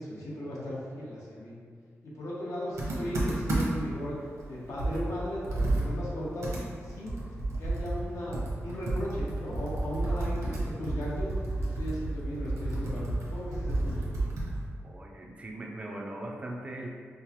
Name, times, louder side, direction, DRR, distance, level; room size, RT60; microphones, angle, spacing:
voice 1, 0.0-1.5 2.0-4.2 4.4-7.2 7.6-11.3 11.5-13.0 13.3-14.1, equal, 85° left, -6 dB, 0.9 m, -37 dB
Computer keyboard, 2.8-4.0 4.4-4.5 4.8-14.7, right 2 dB, 75° right, 0.8 m, -31 dB
voice 2, 14.8-16.9, right 1 dB, 25° right, 0 dB, 0.3 m, -39 dB
4.5 x 2.0 x 2.9 m, 2.1 s
wide cardioid pair, 165°, 5 cm